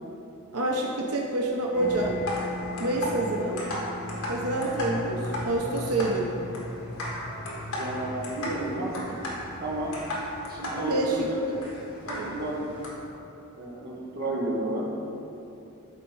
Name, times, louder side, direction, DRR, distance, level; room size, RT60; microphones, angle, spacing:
voice 1, 0.5-2.2 2.8-3.6 4.3-6.3 10.9-11.6 12.1-12.3, right 2 dB, 85° right, -1 dB, 0.8 m, -27 dB
sound 1, 1.7-12.9, left 1 dB, 70° left, 1.8 m, -35 dB
voice 2, 7.7-9.2 9.6-10.0 10.4-11.4 12.0-12.7 13.5-14.9, right 1 dB, 45° right, -4 dB, 1.6 m, -32 dB
12.5 x 4.2 x 4.8 m, 2.9 s
head